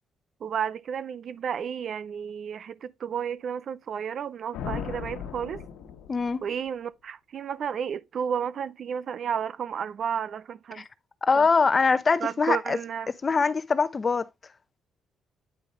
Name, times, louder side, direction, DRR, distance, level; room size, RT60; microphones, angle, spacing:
voice 1, 0.4-5.7 6.4-10.8 11.3-11.5 12.2-13.1, right 8 dB, 60° right, 0.5 m, -32 dB
sound 1, 4.5-6.5, left 7 dB, 90° left, 1.3 m, -37 dB
voice 2, 6.1-6.4 10.7-10.9 11.2-12.8 13.2-14.2, left 4 dB, 35° left, 0.7 m, -23 dB
9.8 x 5.5 x 3.0 m
cardioid pair, 90°, 0 cm